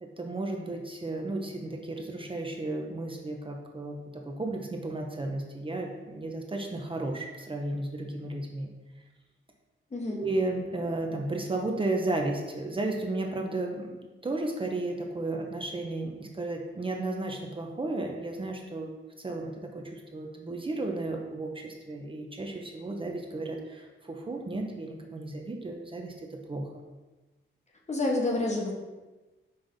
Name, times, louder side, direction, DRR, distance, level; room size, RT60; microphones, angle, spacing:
voice 1, 0.0-8.7 10.1-18.9 19.2-26.7, right 2 dB, 25° right, 1 dB, 0.6 m, -34 dB
voice 2, 9.9-10.3 27.9-28.7, left 2 dB, 35° left, 0 dB, 1.0 m, -28 dB
5.5 x 3.4 x 5.2 m, 1.2 s
wide cardioid pair, 135°, 21 cm